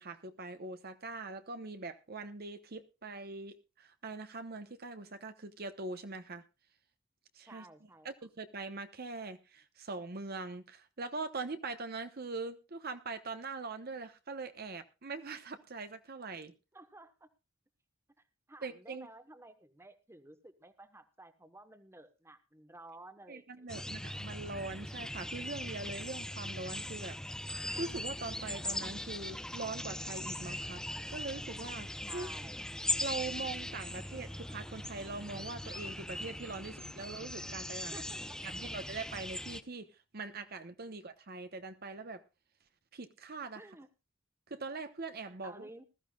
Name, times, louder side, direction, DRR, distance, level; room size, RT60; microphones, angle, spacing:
voice 1, 0.0-6.4 7.3-7.7 8.0-16.5 18.6-19.1 23.3-27.2 27.8-30.8 31.1-32.3 33.0-38.0 38.4-42.2 42.9-43.6 44.5-45.7, right 3 dB, 50° right, 1.0 m, -42 dB
voice 2, 7.5-8.1 16.7-17.3 18.2-24.1 32.0-32.6 37.9-38.4 43.5-43.9 45.4-45.8, right 2 dB, 15° right, 1.2 m, -54 dB
sound 1, 23.7-39.6, left 1 dB, 5° left, 0.6 m, -40 dB
20.0 x 13.5 x 2.3 m
head